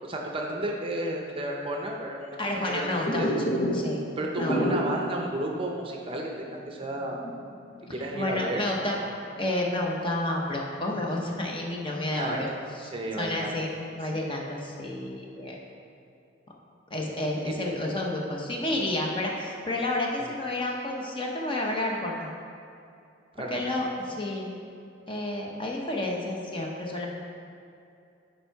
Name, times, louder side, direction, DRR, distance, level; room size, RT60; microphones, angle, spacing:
voice 1, 0.0-2.9 3.2-3.3 4.2-7.3 7.9-8.7 12.1-12.4 12.9-13.5 17.5-17.6 20.3-20.4 23.3-23.6, right 1 dB, 30° right, 0 dB, 0.6 m, -32 dB
voice 2, 2.4-3.3 3.7-4.0 4.4-4.6 7.9-9.0 9.4-12.5 12.7-12.9 13.2-13.7 14.0-15.6 16.9-22.3 23.5-24.5 25.1-27.1, left 1 dB, 25° left, -1 dB, 0.8 m, -30 dB
sound 1, 3.1-4.0 4.2-5.1 5.5-5.6 6.0-6.1 6.6-8.0 8.3-9.0, equal, 65° left, 1.1 m, -29 dB
7.3 x 4.5 x 4.6 m, 2.5 s
head